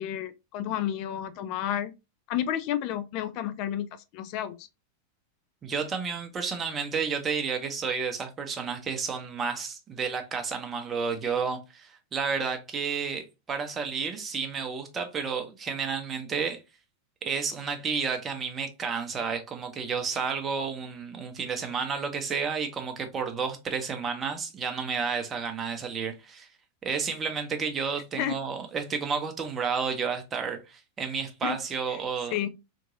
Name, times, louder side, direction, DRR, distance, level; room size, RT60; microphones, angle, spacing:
voice 1, 0.0-1.9 2.3-3.9 4.1-4.7 28.2-28.3 31.4-31.6 32.3-32.5, left 11 dB, 40° left, 0.4 m, -31 dB
voice 2, 5.6-16.6 17.2-26.5 26.8-32.3, right 5 dB, 20° right, 0.7 m, -31 dB
2.9 x 2.6 x 2.5 m
figure-of-eight pair, 90°, 0 cm